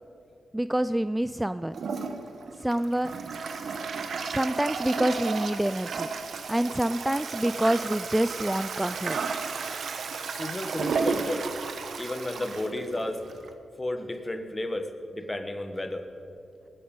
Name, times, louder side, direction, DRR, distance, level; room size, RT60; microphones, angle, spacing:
voice 1, 0.5-1.8 2.6-3.1 4.3-9.2, right 1 dB, 10° right, 13 dB, 0.3 m, -27 dB
Toilet flush, 1.7-13.5, right 5 dB, 70° right, 1.1 m, -33 dB
voice 2, 10.4-11.5 12.0-13.2 13.8-16.0, left 1 dB, 25° left, 7 dB, 1.5 m, -32 dB
19.5 x 10.0 x 5.5 m, 2.7 s
cardioid pair, 65°, 0 cm